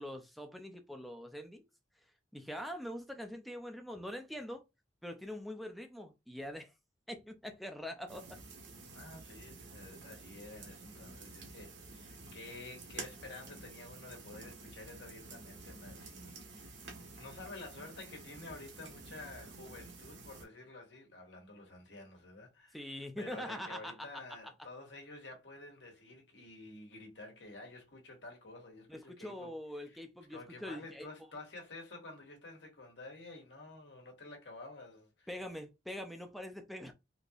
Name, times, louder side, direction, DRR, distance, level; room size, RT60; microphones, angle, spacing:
voice 1, 0.0-1.7 2.3-4.6 5.0-6.7 7.1-8.3 22.7-23.9 28.9-31.1 35.3-36.9, equal, ahead, 0.4 m, -43 dB
sound 1, 8.1-20.4, right 3 dB, 80° right, 1.1 m, -50 dB
voice 2, 8.9-29.5 29.8-30.0 30.3-35.3, left 2 dB, 80° left, 1.3 m, -50 dB
3.8 x 2.8 x 2.4 m
head